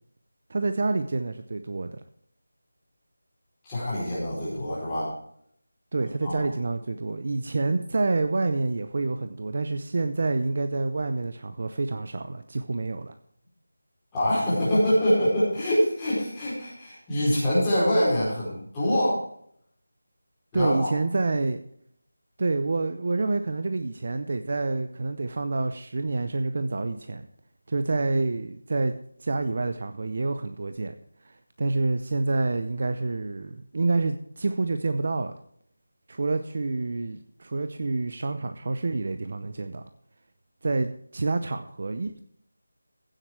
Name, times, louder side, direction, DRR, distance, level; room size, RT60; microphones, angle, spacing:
voice 1, 0.5-2.0 5.9-13.1 20.5-21.6 22.4-27.3 27.7-28.9 29.2-30.9 31.2-35.3 36.1-39.8 40.6-42.2, right 3 dB, 35° right, 9 dB, 0.7 m, -28 dB
voice 2, 3.6-5.1 6.2-6.5 14.1-19.2 20.5-20.9, equal, 10° left, -10 dB, 4.8 m, -24 dB
15.5 x 7.8 x 4.7 m, 0.65 s
figure-of-eight pair, 180°, 0 cm